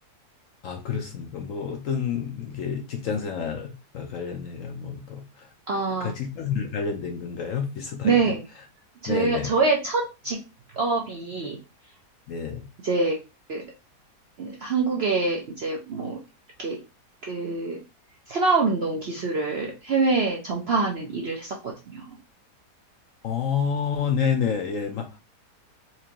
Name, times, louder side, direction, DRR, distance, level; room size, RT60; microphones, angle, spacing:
voice 1, 0.6-5.5 6.0-8.3 9.1-9.5 12.3-12.7 23.2-25.2, left 6 dB, 65° left, 3 dB, 0.8 m, -29 dB
voice 2, 5.7-6.1 8.0-8.4 9.0-10.4 10.7-11.6 12.8-13.2 13.5-13.6 14.4-16.2 16.6-16.8 17.2-17.8 18.3-22.2, right 3 dB, 60° right, -1 dB, 0.6 m, -25 dB
4.4 x 2.5 x 2.8 m, 0.29 s
omnidirectional pair, 1.8 m